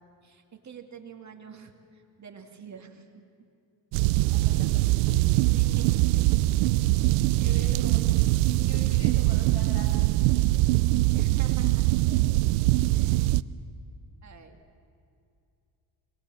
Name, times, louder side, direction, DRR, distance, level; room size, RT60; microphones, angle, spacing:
voice 1, 0.2-3.2 5.5-6.4 7.4-7.8 11.1-12.0 12.9-13.3 14.2-14.6, right 7 dB, 35° right, 4 dB, 2.2 m, -46 dB
sound 1, 3.9-13.4, right 18 dB, 85° right, 0.7 m, -23 dB
voice 2, 4.3-5.3 7.4-10.1, left 3 dB, 60° left, 2 dB, 6.4 m, -44 dB
26.0 x 20.5 x 7.6 m, 2.6 s
supercardioid pair, 85°, 47 cm